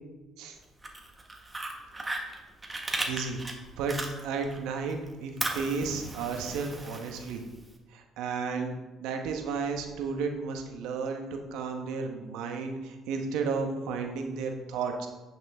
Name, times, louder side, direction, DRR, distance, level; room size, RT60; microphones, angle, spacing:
Fire, 0.7-4.6 4.9-7.7, right 2 dB, 15° right, 1.6 m, -36 dB
voice 1, 3.1-3.4 3.8-4.0 4.2-7.4 7.9-15.1, right 5 dB, 80° right, 4 dB, 1.2 m, -33 dB
9.5 x 6.6 x 3.6 m, 1.1 s
supercardioid pair, 70°, 0 cm